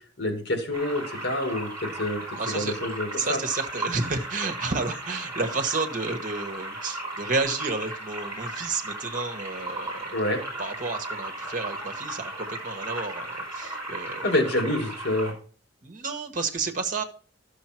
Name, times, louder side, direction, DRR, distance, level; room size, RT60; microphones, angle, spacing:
voice 1, 0.2-3.4 10.1-10.4 14.2-15.3, left 1 dB, 70° left, 3 dB, 2.4 m, -27 dB
sound 1, 0.7-15.3, right 2 dB, 15° right, 5.0 m, -36 dB
voice 2, 2.4-2.8 3.2-10.1 10.6-14.3 15.8-17.0, right 3 dB, 45° right, 6 dB, 1.3 m, -31 dB
12.5 x 6.7 x 4.5 m, 0.43 s
head